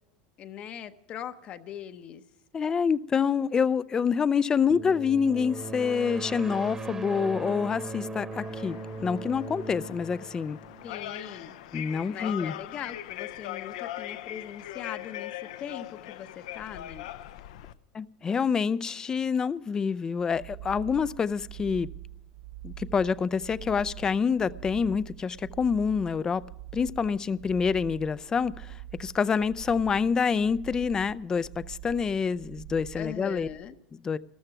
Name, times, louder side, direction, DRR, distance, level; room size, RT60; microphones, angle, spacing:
voice 1, 0.4-2.2 10.8-11.6 12.1-15.3 15.6-17.1 32.9-33.8, left 9 dB, 35° left, 10 dB, 0.8 m, -40 dB
voice 2, 2.5-10.6 11.7-12.5 17.9-21.9 22.6-26.4 26.7-28.7 29.0-33.5 33.9-34.2, left 6 dB, 20° left, 18 dB, 0.4 m, -27 dB
sound 1, 4.7-11.4, right 2 dB, 15° right, 1.1 m, -39 dB
sound 2, 8.3-17.7, left 14 dB, 80° left, 0.7 m, -40 dB
sound 3, 20.2-33.6, right 13 dB, 90° right, 3.8 m, -44 dB
14.0 x 13.5 x 5.9 m, 0.86 s
supercardioid pair, 140°, 3 cm